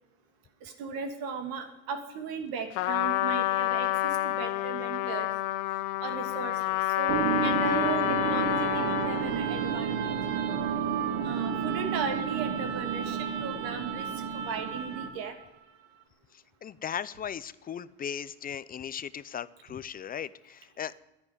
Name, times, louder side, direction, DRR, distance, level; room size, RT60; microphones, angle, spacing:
voice 1, 0.6-5.3 6.0-10.1 11.2-14.1 14.3-15.3, right 5 dB, 60° right, 6 dB, 2.8 m, -37 dB
Trumpet, 2.7-9.4, left 17 dB, 65° left, 0.9 m, -28 dB
sound 1, 7.1-15.3, right 7 dB, 75° right, 2.0 m, -31 dB
voice 2, 16.6-21.0, left 8 dB, 20° left, 17 dB, 0.5 m, -37 dB
11.0 x 10.5 x 9.8 m, 1.1 s
supercardioid pair, 115°, 41 cm